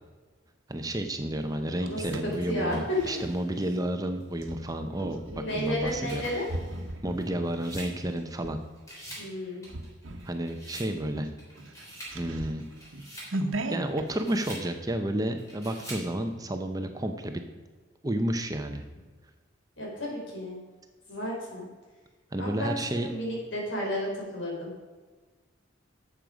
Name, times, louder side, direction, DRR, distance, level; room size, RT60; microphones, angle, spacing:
voice 1, 0.7-6.3 7.0-8.6 10.3-11.3 12.1-12.6 13.7-17.4 18.0-18.8 22.3-23.1, right 1 dB, 20° right, 6 dB, 0.7 m, -31 dB
sound 1, 1.4-3.4 4.3-8.6 9.1-9.3 9.7-10.4 10.7-10.8 11.1-14.1, right 1 dB, 80° right, 1.0 m, -38 dB
voice 2, 1.8-3.2 5.3-6.5 9.2-9.6 19.8-20.6 21.1-21.7 22.4-24.7, left 1 dB, 70° left, -3 dB, 4.1 m, -32 dB
sound 2, 2.1-3.6 4.2-4.3 5.5-8.5 8.8-9.3 9.6-10.9 11.4-12.2 12.6-13.3 13.9-14.7 15.4-16.1, right 1 dB, 15° left, 3.4 m, -46 dB
12.0 x 7.7 x 5.1 m, 1.4 s
head